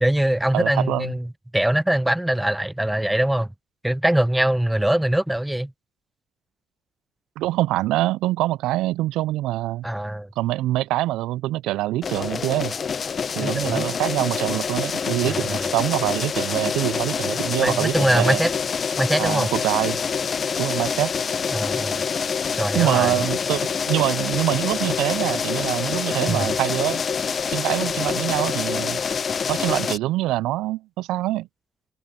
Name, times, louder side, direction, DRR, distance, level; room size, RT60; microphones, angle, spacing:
voice 1, 0.0-1.3 1.5-3.5 3.8-5.7 9.8-10.3 13.4-13.9 15.2-15.7 17.6-18.5 19.0-19.5 21.5-22.0 22.6-23.2 26.3-26.5, right 1 dB, 5° right, 0.8 m, -22 dB
voice 2, 0.5-1.1 7.4-9.8 10.4-12.7 13.4-18.4 19.2-20.0 20.6-21.1 22.7-27.0 27.5-29.0 29.5-31.5, right 16 dB, 75° right, 0.4 m, -24 dB
sound 1, 12.0-30.0, left 6 dB, 50° left, 1.1 m, -26 dB
hypercardioid pair, 55°, 0 cm